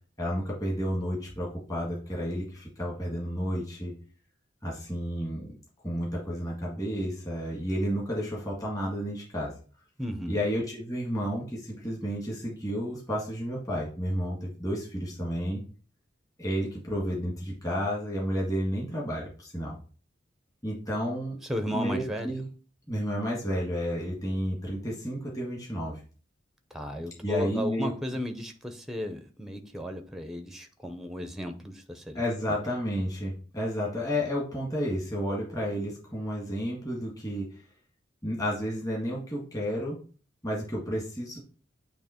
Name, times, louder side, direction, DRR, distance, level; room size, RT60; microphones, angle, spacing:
voice 1, 0.2-3.9 4.6-5.6 5.8-9.5 10.3-15.6 16.4-19.8 20.6-21.4 21.7-22.5 22.9-26.0 27.2-27.9 32.1-37.5 38.2-40.0 40.4-41.4, equal, 20° left, -3 dB, 1.8 m, -31 dB
voice 2, 10.0-10.4 21.4-22.3 26.7-32.2 32.5-32.6, equal, ahead, 6 dB, 0.7 m, -34 dB
8.9 x 3.0 x 4.4 m, 0.38 s
head